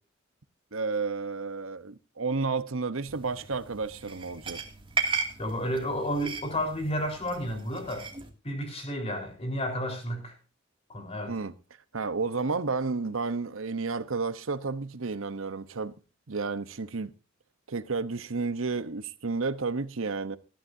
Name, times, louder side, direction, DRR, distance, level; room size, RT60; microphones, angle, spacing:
voice 1, 0.7-4.6 11.3-11.5 11.9-15.9 16.3-17.1 17.7-20.4, right 4 dB, 90° right, 1.0 m, -31 dB
sound 1, 3.1-8.3, right 5 dB, 25° right, 2.4 m, -36 dB
voice 2, 5.4-8.1 8.4-10.4 10.9-11.3, equal, 30° left, 4.3 m, -31 dB
19.0 x 13.0 x 2.7 m
head